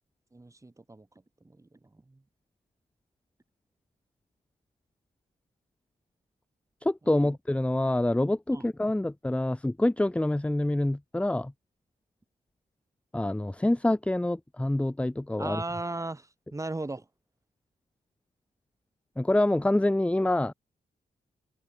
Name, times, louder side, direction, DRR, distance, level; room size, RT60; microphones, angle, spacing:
voice 1, 0.3-1.1 1.4-2.2 7.2-7.4 8.5-8.7 15.4-17.1, right 2 dB, 20° right, 3.8 m, -37 dB
voice 2, 6.8-11.5 13.1-15.6 19.2-20.5, left 1 dB, 5° left, 0.8 m, -26 dB
wide cardioid pair, 110°, 17 cm